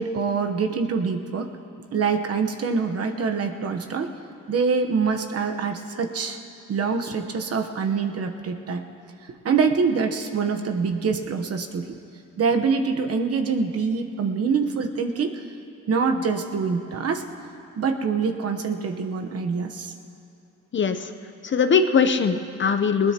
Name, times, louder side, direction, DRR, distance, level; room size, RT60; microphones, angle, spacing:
voice 1, 0.0-1.5 1.9-4.1 4.5-6.4 6.7-8.8 9.4-12.0 12.4-15.4 15.9-17.2 17.8-19.9, right 5 dB, 50° right, 5 dB, 1.1 m, -25 dB
voice 2, 20.7-21.1 21.4-23.1, left 5 dB, 40° left, 9 dB, 0.8 m, -21 dB
20.5 x 19.5 x 3.0 m, 2.6 s
cardioid pair, 90°, 30 cm